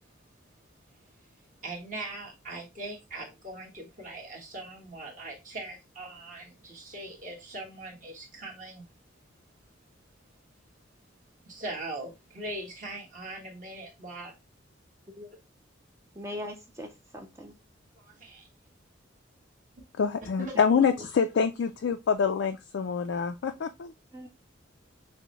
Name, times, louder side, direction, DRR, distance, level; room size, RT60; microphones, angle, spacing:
voice 1, 1.0-8.9 11.4-14.3 18.0-18.4 20.4-20.5, right 2 dB, 40° right, 1.3 m, -41 dB
voice 2, 16.2-17.6 24.1-24.3, left 1 dB, 15° right, 0.4 m, -40 dB
voice 3, 20.0-23.9, left 6 dB, 70° left, 0.4 m, -26 dB
6.0 x 2.1 x 3.0 m
head